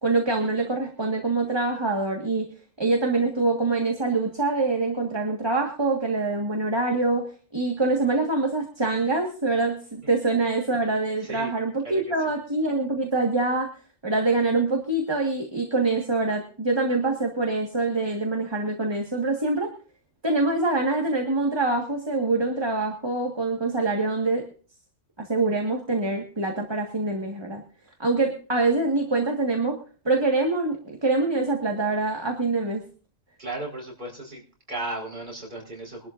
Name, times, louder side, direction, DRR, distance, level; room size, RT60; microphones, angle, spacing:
voice 1, 0.0-2.5 2.8-7.3 7.5-13.7 14.0-19.7 20.2-24.5 25.2-27.6 28.0-29.8 30.0-32.8, right 3 dB, 20° right, 2 dB, 1.7 m, -25 dB
voice 2, 33.4-34.4 34.7-36.1, right 2 dB, 40° right, -1 dB, 4.8 m, -35 dB
23.5 x 12.0 x 2.6 m, 0.39 s
omnidirectional pair, 1.3 m